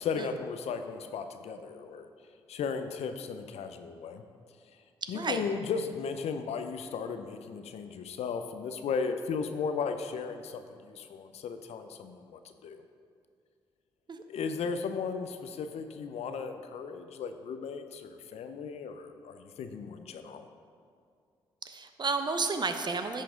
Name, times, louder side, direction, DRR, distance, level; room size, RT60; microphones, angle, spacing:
voice 1, 0.0-2.1 2.5-4.2 5.1-12.8 14.3-20.5, left 5 dB, 65° left, 8 dB, 0.6 m, -36 dB
voice 2, 21.6-23.2, right 4 dB, 40° right, 7 dB, 0.8 m, -31 dB
10.5 x 5.7 x 3.7 m, 2.3 s
hypercardioid pair, 45°, 12 cm